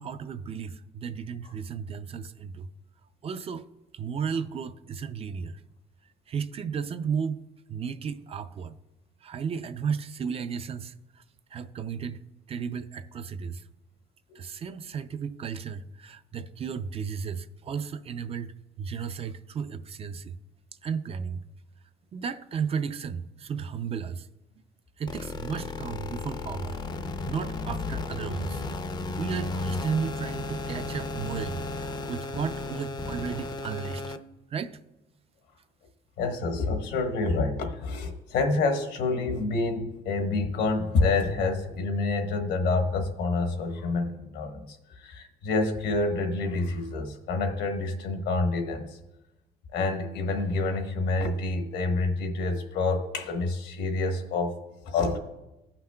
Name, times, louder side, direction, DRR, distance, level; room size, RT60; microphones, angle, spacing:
voice 1, 0.0-2.7 3.2-3.7 3.9-5.6 6.3-8.7 9.2-11.2 11.5-12.2 12.5-13.6 14.4-20.4 20.8-21.4 22.1-24.3 25.0-28.6 29.2-34.2 34.5-34.8, right 6 dB, 35° right, 0.4 m, -34 dB
sound 1, 25.1-34.2, left 3 dB, 25° left, 0.5 m, -34 dB
voice 2, 36.2-49.0 49.7-54.5 54.8-55.2, left 3 dB, 80° left, 1.2 m, -28 dB
16.0 x 5.8 x 2.2 m
cardioid pair, 110°, 17 cm